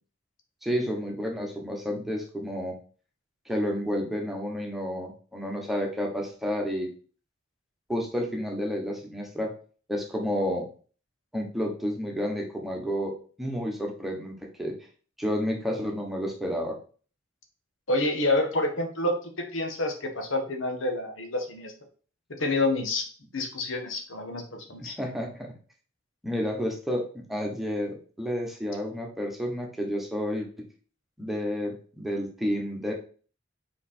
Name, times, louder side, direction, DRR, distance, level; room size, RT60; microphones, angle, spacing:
voice 1, 0.6-2.8 3.5-6.9 7.9-9.5 9.9-10.7 11.3-14.8 15.2-16.8 24.8-25.5 26.2-30.5 31.2-32.9, equal, ahead, 0 dB, 1.1 m, -30 dB
voice 2, 17.9-21.7 22.3-23.0 23.3-24.9, left 2 dB, 85° left, 4 dB, 1.3 m, -28 dB
5.0 x 4.6 x 4.3 m, 0.40 s
head